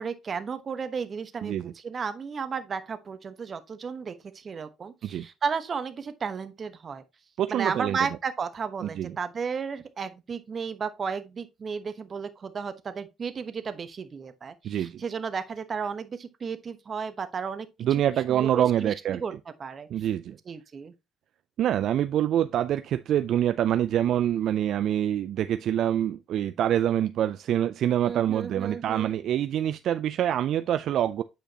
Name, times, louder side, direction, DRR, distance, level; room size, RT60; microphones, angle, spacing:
voice 1, 0.0-7.0 7.5-17.7 18.3-19.3 19.6-19.9 20.5-20.9 28.0-29.1, right 6 dB, 40° right, 1.1 m, -33 dB
voice 2, 1.4-1.7 5.0-5.3 7.4-8.0 8.8-9.2 14.6-15.0 17.8-19.2 19.9-20.4 21.6-31.2, right 11 dB, 65° right, 0.3 m, -26 dB
9.0 x 5.0 x 2.9 m
supercardioid pair, 80°, 0 cm